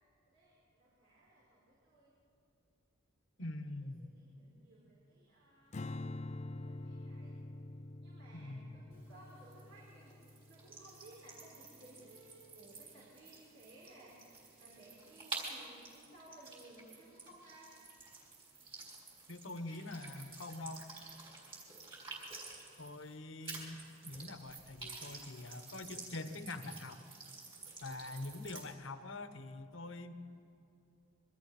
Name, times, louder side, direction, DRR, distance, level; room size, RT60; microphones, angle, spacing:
voice 1, 0.3-2.1 4.0-5.8 6.5-7.4 8.0-10.2 10.5-17.7, right 1 dB, 75° right, -7 dB, 5.5 m, -59 dB
voice 2, 3.4-4.1 8.3-8.8 19.3-20.9 22.8-27.0 27.8-30.1, left 2 dB, 70° left, 9 dB, 1.2 m, -45 dB
Strum, 5.7-12.1, left 2 dB, 35° left, 0.5 m, -47 dB
sound 1, 8.9-23.2 23.4-28.7, right 3 dB, 25° right, 4.9 m, -50 dB
26.5 x 23.5 x 4.4 m, 2.6 s
head